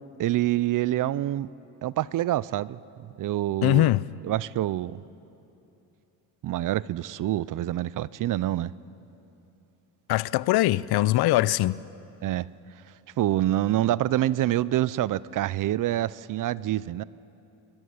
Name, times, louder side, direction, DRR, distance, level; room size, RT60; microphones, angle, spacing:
voice 1, 0.2-1.5 1.8-3.9 4.2-5.0 6.4-8.7 12.2-12.5 13.2-17.0, right 14 dB, 50° right, 0.6 m, -26 dB
voice 2, 3.6-4.1 10.1-11.8, left 16 dB, 70° left, 0.7 m, -22 dB
23.5 x 21.5 x 9.6 m
cardioid pair, 115°, 40 cm